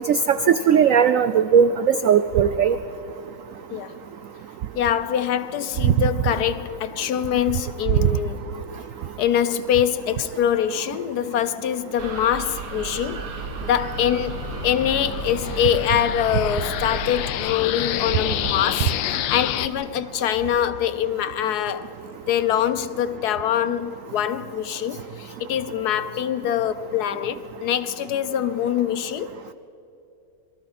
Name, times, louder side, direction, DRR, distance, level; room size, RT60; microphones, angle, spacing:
voice 1, 0.1-2.8 5.8-5.9, right 7 dB, 90° right, 0.7 m, -18 dB
voice 2, 4.7-8.5 9.2-13.3 13.6-14.4 14.6-21.9 22.3-29.3, left 10 dB, 65° left, 1.2 m, -24 dB
sound 1, 12.0-17.3, right 7 dB, 60° right, 1.9 m, -34 dB
sound 2, 12.5-19.7, left 12 dB, 80° left, 1.4 m, -29 dB
27.0 x 23.0 x 4.3 m
omnidirectional pair, 2.1 m